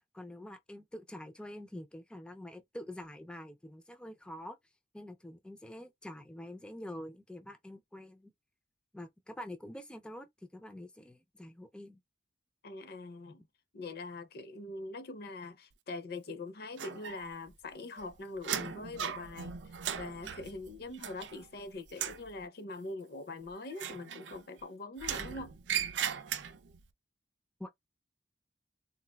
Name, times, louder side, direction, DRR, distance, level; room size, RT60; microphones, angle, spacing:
voice 1, 0.1-4.6 4.9-8.3 8.9-10.3 10.5-12.0 27.6-27.7, left 1 dB, 5° left, 0.4 m, -46 dB
voice 2, 12.6-13.5 13.7-19.5 20.0-25.6, left 2 dB, 60° left, 0.6 m, -43 dB
sound 1, 16.8-17.5 17.8-21.6 21.9-22.3 23.7-24.6 25.0-26.8, right 8 dB, 85° right, 0.5 m, -38 dB
3.9 x 2.4 x 2.2 m
head